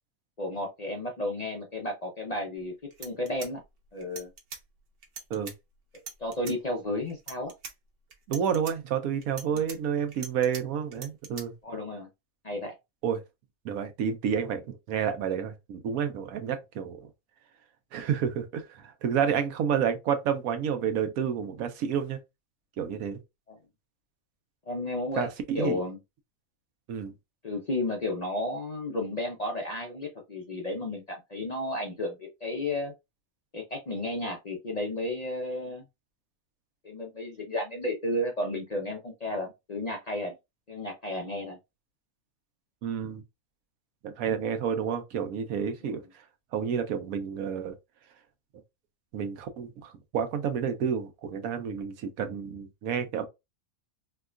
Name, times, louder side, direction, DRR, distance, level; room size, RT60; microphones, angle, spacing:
voice 1, 0.4-2.7 3.0-3.6 3.9-4.3 6.2-7.5 9.5-9.6 11.6-12.1 12.4-12.7 23.5-23.6 24.7-25.3 25.5-26.0 27.4-32.9 33.5-35.8 36.8-40.3 40.7-41.6 45.8-45.9, left 1 dB, 45° left, 0.5 m, -33 dB
sound 1, 2.6-2.7 2.9-4.6 5.0-5.5 5.9-6.6 7.1-7.7 8.1-8.7 9.2-10.6 10.9-11.4, right 5 dB, 50° right, 0.8 m, -42 dB
voice 2, 8.3-11.5 13.0-13.2 13.6-17.0 17.9-22.2 22.8-23.2 25.1-25.8 26.9-27.1 42.8-43.2 44.0-46.0 46.5-47.7 49.1-53.3, right 7 dB, 80° right, 1.1 m, -30 dB
4.5 x 2.2 x 2.4 m
omnidirectional pair, 1.5 m